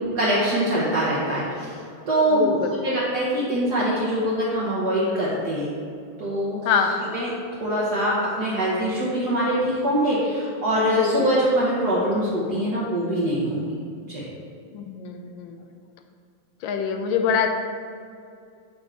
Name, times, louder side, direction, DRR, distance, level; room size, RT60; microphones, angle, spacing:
voice 1, 0.1-1.7 2.1-5.7 6.2-7.3 7.6-13.6 14.1-14.2, right 1 dB, 60° right, -8 dB, 1.5 m, -23 dB
voice 2, 2.3-2.7 6.7-6.9 10.9-11.3 14.7-15.6 16.6-17.5, left 7 dB, 80° left, 5 dB, 1.3 m, -24 dB
6.1 x 5.1 x 3.3 m, 2.3 s
omnidirectional pair, 2.1 m